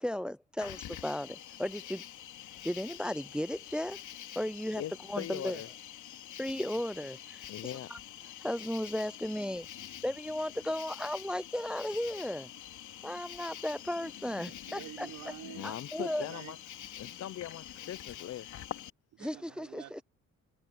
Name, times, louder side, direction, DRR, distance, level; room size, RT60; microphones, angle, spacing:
voice 1, 0.0-2.0 2.6-4.0 4.4-4.8 5.1-5.6 6.4-7.5 7.9-8.0 8.4-9.7 10.0-12.5 13.0-15.1 15.6-16.3 19.2-19.8, left 1 dB, 5° right, 0.5 m, -35 dB
Cricket, 0.6-18.9, left 11 dB, 75° left, 3.3 m, -46 dB
voice 2, 4.7-5.7 6.0-6.2 7.5-7.9 15.5-16.6 17.0-18.5, left 11 dB, 55° left, 0.7 m, -41 dB
voice 3, 14.4-16.6 19.1-20.0, right 14 dB, 85° right, 4.2 m, -49 dB
cardioid pair, 90°, 30 cm